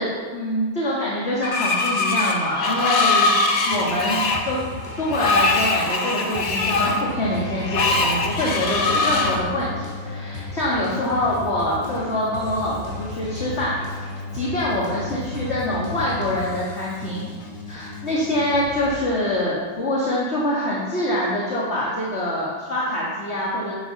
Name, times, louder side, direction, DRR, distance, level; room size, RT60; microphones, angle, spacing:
voice 1, 0.0-3.4 3.6-4.6 5.0-13.7 14.3-17.3 17.7-23.7, left 1 dB, 30° left, -6 dB, 2.4 m, -25 dB
Screech, 1.4-9.4, left 3 dB, 45° left, 1.5 m, -22 dB
sound 1, 3.7-19.4, left 2 dB, 15° right, 3.9 m, -38 dB
Keyboard (musical), 6.8-18.9, left 3 dB, 70° left, 2.9 m, -36 dB
10.5 x 10.0 x 6.0 m, 1.5 s
omnidirectional pair, 2.4 m